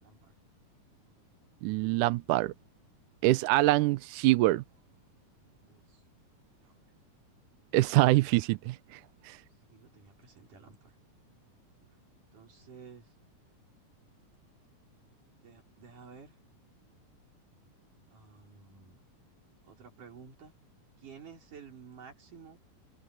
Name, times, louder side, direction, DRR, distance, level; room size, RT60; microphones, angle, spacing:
voice 1, 0.0-0.3 5.7-6.0 6.6-6.8 9.7-11.0 11.8-11.9 12.3-13.1 15.4-16.4 18.1-19.0 19.7-20.5 21.0-22.6, right 6 dB, 65° right, 6.6 m, -52 dB
voice 2, 1.6-2.5 3.2-4.6 7.7-9.4, right 18 dB, 80° right, 1.9 m, -25 dB
open air
omnidirectional pair, 4.0 m